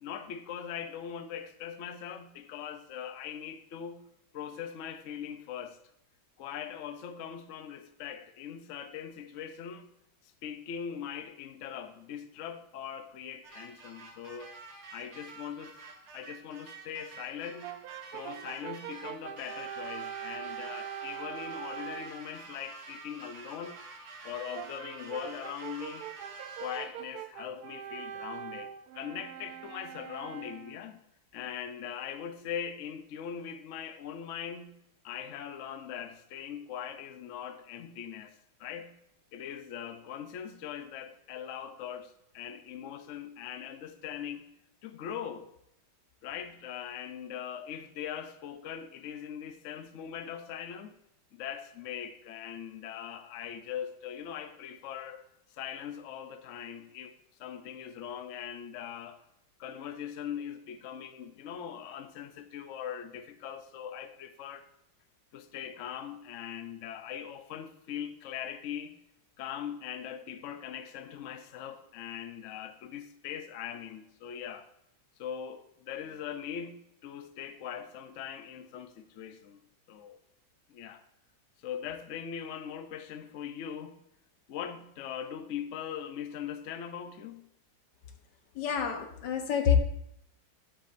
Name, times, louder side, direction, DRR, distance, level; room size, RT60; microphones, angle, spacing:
voice 1, 0.0-4.0 4.3-5.8 6.4-9.9 10.2-14.5 14.9-15.7 16.1-17.7 18.1-23.8 24.2-26.0 26.6-31.0 31.3-34.8 35.0-39.0 39.3-44.5 44.8-45.5 46.2-51.0 51.3-57.1 57.4-59.2 59.6-64.7 65.3-69.0 69.4-74.7 75.2-79.6 79.9-80.2 80.7-81.0 81.6-84.0 84.5-87.5, left 8 dB, 80° left, 0.6 m, -41 dB
sound 1, 13.4-27.1, right 3 dB, 40° right, 1.3 m, -48 dB
Brass instrument, 17.6-22.2 24.5-30.9, right 10 dB, 75° right, 0.9 m, -42 dB
voice 2, 88.5-89.8, left 8 dB, 60° left, 1.5 m, -27 dB
10.5 x 8.5 x 2.6 m
omnidirectional pair, 2.2 m